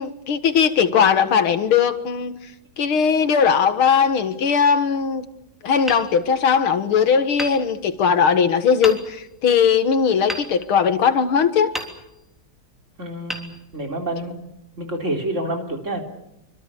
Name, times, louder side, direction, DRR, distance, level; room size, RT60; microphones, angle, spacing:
voice 1, 0.0-2.4 2.8-5.3 5.6-11.7, left 6 dB, 85° left, 2.5 m, -19 dB
Hammer, 5.9-6.8 7.4-8.3 8.8-9.4 10.3-11.2 11.7-12.5 13.2-14.2, equal, ahead, 3.2 m, -35 dB
voice 2, 13.0-14.5 14.8-16.0, right 1 dB, 35° right, 4.0 m, -28 dB
25.5 x 25.0 x 7.0 m
omnidirectional pair, 2.3 m